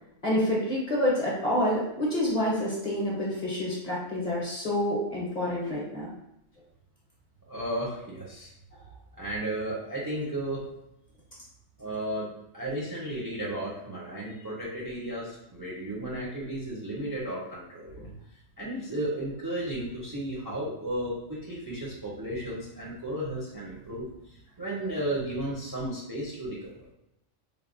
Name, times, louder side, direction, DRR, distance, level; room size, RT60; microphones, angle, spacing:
voice 1, 0.2-6.1 18.0-18.1, left 1 dB, 45° left, -5 dB, 0.7 m, -28 dB
voice 2, 7.5-8.5 9.2-10.6 11.8-18.0 18.6-26.9, right 1 dB, 30° right, -6 dB, 0.4 m, -34 dB
3.4 x 2.1 x 2.4 m, 0.84 s
omnidirectional pair, 1.3 m